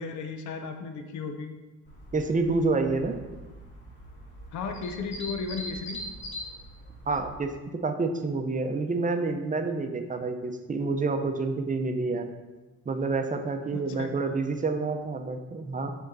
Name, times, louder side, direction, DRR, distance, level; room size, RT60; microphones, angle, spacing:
voice 1, 0.0-1.5 4.5-6.0 13.7-14.1, left 4 dB, 75° left, 5 dB, 0.8 m, -35 dB
sound 1, 1.8-7.4, equal, 40° left, 2.0 m, -42 dB
voice 2, 2.1-3.2 7.1-12.3 12.9-16.0, right 3 dB, 25° right, 6 dB, 0.7 m, -28 dB
6.3 x 4.6 x 4.0 m, 1.2 s
cardioid pair, 90°, 30 cm